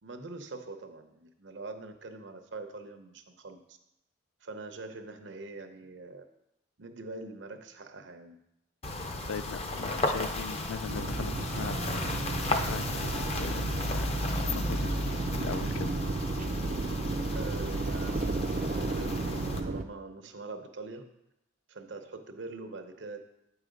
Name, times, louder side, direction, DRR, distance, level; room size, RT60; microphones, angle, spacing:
voice 1, 0.0-3.8 4.4-6.3 6.8-8.4 17.3-19.2 19.6-21.1 21.7-23.3, right 3 dB, 70° right, 7 dB, 0.7 m, -43 dB
sound 1, 8.8-19.6, left 1 dB, 30° left, 0.6 m, -34 dB
voice 2, 9.3-11.8 12.5-14.1 14.5-15.9, left 6 dB, 85° left, 15 dB, 0.4 m, -40 dB
sound 2, 10.9-19.8, right 3 dB, 40° right, 0.4 m, -34 dB
8.4 x 4.8 x 5.1 m, 0.85 s
head